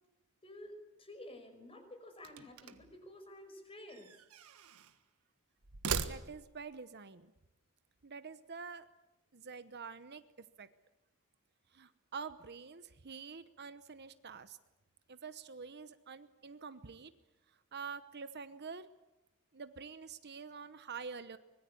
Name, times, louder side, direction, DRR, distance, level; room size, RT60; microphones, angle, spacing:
voice 1, 0.4-0.7 1.0-4.1, left 1 dB, 25° left, 6 dB, 5.3 m, -51 dB
sound 1, 2.2-3.0 3.9-5.0 5.6-6.7, right 6 dB, 80° right, 1.5 m, -40 dB
voice 2, 6.0-7.3 8.0-8.9 9.3-10.2 10.6-10.7 11.7-14.6 15.1-17.1 17.7-18.9 19.5-21.4, right 5 dB, 50° right, 12 dB, 1.0 m, -47 dB
24.5 x 21.5 x 8.5 m, 0.98 s
head